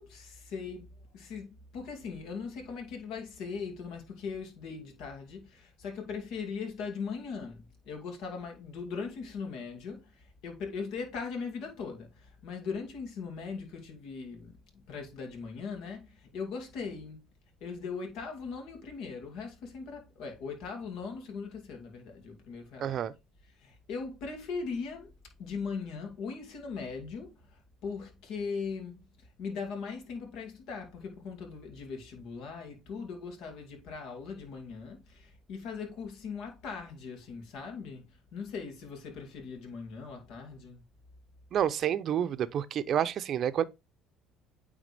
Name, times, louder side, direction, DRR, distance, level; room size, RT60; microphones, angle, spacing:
voice 1, 0.0-17.2 17.6-23.0 23.6-25.1 25.4-29.0 29.4-40.8, left 5 dB, 75° left, 2.2 m, -40 dB
voice 2, 22.8-23.1 41.5-43.6, right 9 dB, 50° right, 0.6 m, -29 dB
9.0 x 3.4 x 3.4 m
cardioid pair, 105°, 0 cm